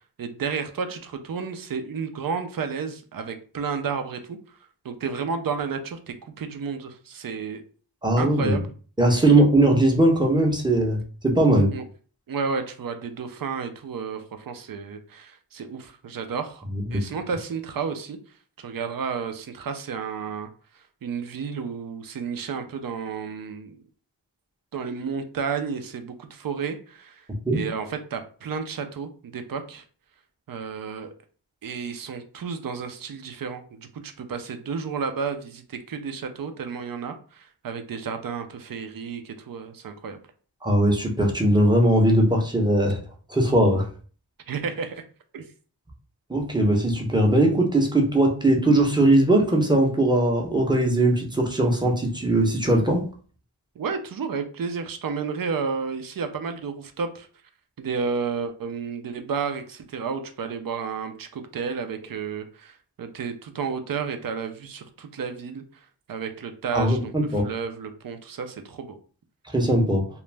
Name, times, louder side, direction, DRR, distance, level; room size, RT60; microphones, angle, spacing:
voice 1, 0.2-4.4 4.8-7.6 8.2-8.7 11.7-11.8 12.3-16.6 16.9-18.2 18.6-20.5 20.8-23.8 24.7-27.2 27.5-29.8 30.5-31.1 31.6-40.2 44.5-45.0 45.3-45.5 53.8-57.3 57.8-67.1 67.4-69.0, right 5 dB, 50° right, 7 dB, 0.5 m, -32 dB
voice 2, 8.0-8.6 9.0-11.7 16.7-17.0 27.3-27.6 40.6-43.0 43.3-43.9 46.3-53.0 66.7-67.4 69.5-70.1, right 1 dB, 10° right, 0 dB, 0.7 m, -20 dB
2.4 x 2.1 x 3.2 m, 0.41 s
cardioid pair, 45°, 45 cm